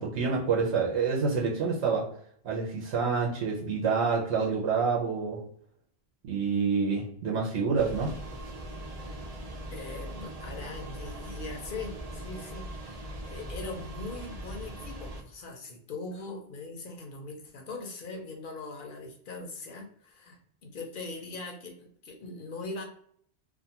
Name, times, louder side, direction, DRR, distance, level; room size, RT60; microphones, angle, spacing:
voice 1, 0.0-2.1 2.4-5.4 6.2-8.2, right 5 dB, 80° right, -2 dB, 0.9 m, -27 dB
sound 1, 7.8-15.2, right 1 dB, 55° right, 0.4 m, -40 dB
voice 2, 9.7-22.8, left 3 dB, 55° left, 3 dB, 0.7 m, -41 dB
2.5 x 2.3 x 2.7 m, 0.63 s
omnidirectional pair, 1.1 m